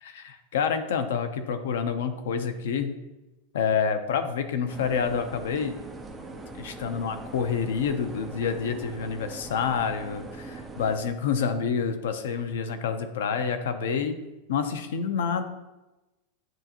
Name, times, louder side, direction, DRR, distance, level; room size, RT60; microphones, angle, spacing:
voice 1, 0.0-2.9 3.5-5.7 6.6-14.2 14.5-15.4, left 6 dB, 90° left, 9 dB, 0.8 m, -28 dB
sound 1, 4.7-11.0, right 3 dB, 5° right, 0.6 m, -41 dB
10.5 x 3.9 x 3.0 m, 1.1 s
supercardioid pair, 170°, 0 cm